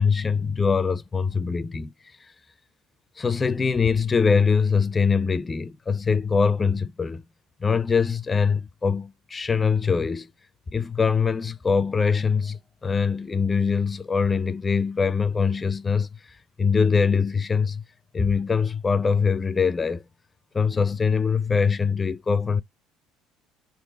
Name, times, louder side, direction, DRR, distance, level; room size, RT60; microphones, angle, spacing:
voice 1, 0.0-1.9 3.2-7.2 7.6-10.3 10.7-16.1 16.6-17.8 18.1-20.0 20.5-22.6, left 5 dB, 25° left, 0.4 m, -23 dB
3.9 x 2.8 x 4.0 m
supercardioid pair, 80°, 0 cm